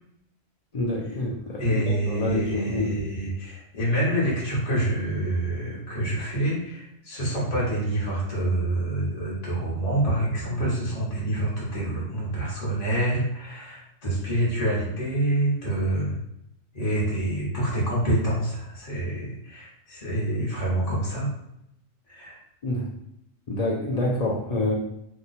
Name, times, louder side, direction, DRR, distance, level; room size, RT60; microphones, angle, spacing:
voice 1, 0.7-2.9 22.6-22.9 23.5-24.7, left 2 dB, 55° left, -2 dB, 0.4 m, -27 dB
voice 2, 1.6-16.2 16.7-21.3 22.1-22.4, right 1 dB, 35° left, -7 dB, 1.0 m, -27 dB
2.9 x 2.2 x 4.0 m, 0.81 s
omnidirectional pair, 1.3 m